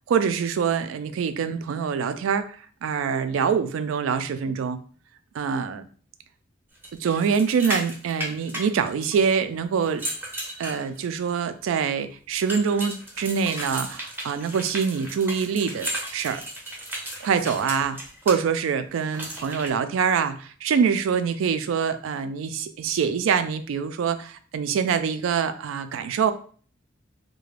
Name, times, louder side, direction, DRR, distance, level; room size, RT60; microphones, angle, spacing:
voice 1, 0.1-4.8 5.3-5.9 7.0-10.0 10.6-16.4 17.2-26.3, right 6 dB, 80° right, 10 dB, 0.3 m, -25 dB
sound 1, 6.8-9.3 9.8-11.3 12.5-18.4 19.1-19.7, right 1 dB, 10° right, 0.6 m, -34 dB
2.4 x 2.1 x 3.1 m, 0.43 s
head